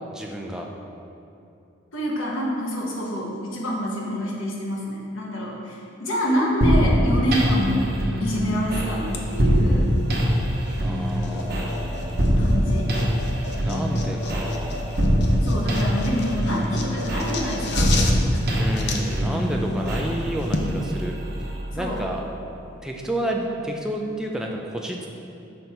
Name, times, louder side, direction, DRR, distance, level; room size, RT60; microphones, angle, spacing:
voice 1, 0.1-0.7 10.8-12.3 13.6-14.9 18.5-21.1 21.8-22.2 22.8-25.1, right 1 dB, 5° right, 0 dB, 0.4 m, -30 dB
voice 2, 1.9-7.9 8.2-9.9 12.4-13.0 15.4-17.9 18.3-18.4 21.7-22.0, equal, 70° left, -3 dB, 1.2 m, -27 dB
sound 1, 6.6-22.2, equal, 45° right, 0.9 m, -23 dB
sound 2, 9.1-20.7, left 3 dB, 55° left, 0.6 m, -35 dB
6.1 x 5.4 x 4.3 m, 2.8 s
head